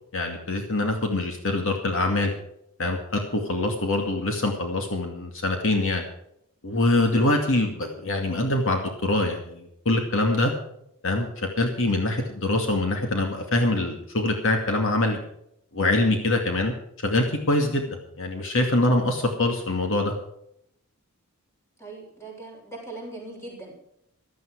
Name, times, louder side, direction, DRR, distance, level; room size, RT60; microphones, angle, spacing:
voice 1, 0.1-2.3 2.8-6.0 6.6-10.5 11.0-15.2 15.7-16.7 17.0-20.1, left 2 dB, 65° left, 3 dB, 2.4 m, -24 dB
voice 2, 21.8-23.7, right 2 dB, 10° left, -1 dB, 6.7 m, -40 dB
15.5 x 13.0 x 4.8 m, 0.74 s
head